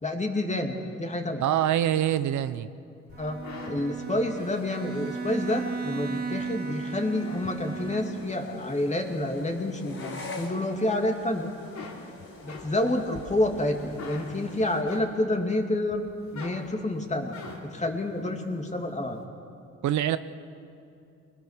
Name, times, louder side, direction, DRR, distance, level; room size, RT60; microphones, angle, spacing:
voice 1, 0.0-1.4 3.2-11.5 12.4-16.1 16.3-17.3 17.6-19.2, left 1 dB, 25° left, 3 dB, 2.6 m, -29 dB
voice 2, 1.4-2.7 19.8-20.2, right 11 dB, 70° right, 13 dB, 0.7 m, -24 dB
sound 1, 3.1-6.5 6.9-8.0 8.6-9.5 9.8-11.1 11.4-15.5 15.9-17.9, left 4 dB, 65° left, 3.4 m, -45 dB
Bowed string instrument, 3.1-8.4, right 5 dB, 30° right, 2.0 m, -36 dB
sound 2, 4.3-14.8, left 2 dB, 45° left, 4.2 m, -47 dB
22.5 x 21.0 x 6.7 m, 2.5 s
cardioid pair, 90°, 30 cm